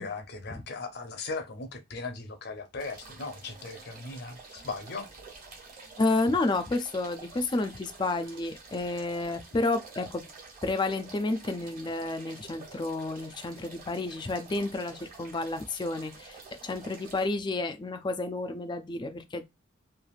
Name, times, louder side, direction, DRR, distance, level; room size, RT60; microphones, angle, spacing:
voice 1, 0.0-5.1, left 3 dB, 55° left, 0.7 m, -38 dB
sound 1, 2.8-17.3, right 4 dB, 45° right, 1.4 m, -49 dB
voice 2, 6.0-10.3 10.6-16.4 16.6-19.4, left 2 dB, 25° left, 0.4 m, -30 dB
3.2 x 2.4 x 2.4 m
head